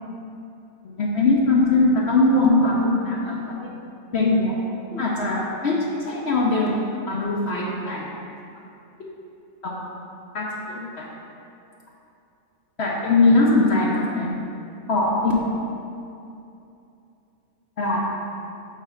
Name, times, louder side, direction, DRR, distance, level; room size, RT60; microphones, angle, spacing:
voice 1, 0.8-3.6 4.1-4.6 4.9-6.8 7.1-8.1 9.0-9.1 9.6-9.8 10.3-11.1 12.8-14.4 14.9-15.4 17.8-18.0, left 2 dB, 55° left, -3 dB, 0.9 m, -21 dB
7.2 x 3.3 x 5.7 m, 2.7 s
omnidirectional pair, 1.5 m